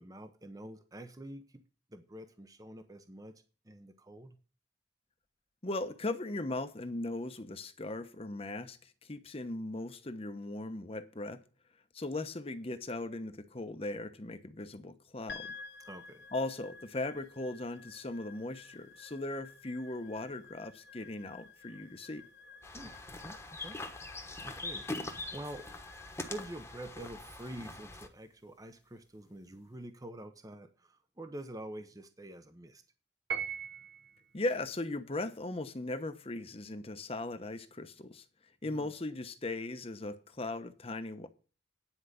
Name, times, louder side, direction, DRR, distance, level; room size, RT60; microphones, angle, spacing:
voice 1, 0.0-1.6 1.9-4.4 15.8-16.2 22.7-23.8 24.4-24.9 25.3-25.7 26.2-32.8 38.6-38.9, right 1 dB, 20° right, 0.8 m, -47 dB
voice 2, 5.6-11.4 11.9-15.5 16.3-22.3 34.3-38.2 38.6-41.3, left 2 dB, 35° left, 0.9 m, -38 dB
sound 1, 15.3-29.7, left 4 dB, 70° left, 1.3 m, -53 dB
sound 2, 22.6-28.1, left 2 dB, 15° left, 1.2 m, -43 dB
Piano, 33.3-34.2, right 7 dB, 70° right, 1.0 m, -37 dB
10.0 x 4.9 x 8.1 m
head